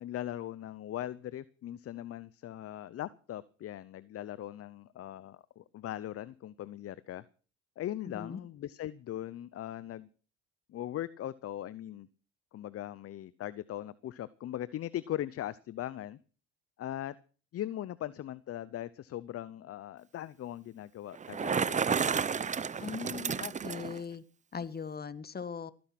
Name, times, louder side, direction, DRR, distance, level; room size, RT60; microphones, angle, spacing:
voice 1, 0.0-7.2 7.8-10.1 10.7-12.1 12.5-16.2 16.8-17.2 17.5-21.8, left 12 dB, 45° left, 18 dB, 0.7 m, -40 dB
voice 2, 8.0-8.4 22.8-24.2 24.5-25.7, left 6 dB, 30° left, 15 dB, 1.4 m, -39 dB
Bicycle, 21.1-24.0, right 6 dB, 25° right, 0.6 m, -31 dB
18.0 x 10.5 x 5.9 m, 0.39 s
supercardioid pair, 75°, 32 cm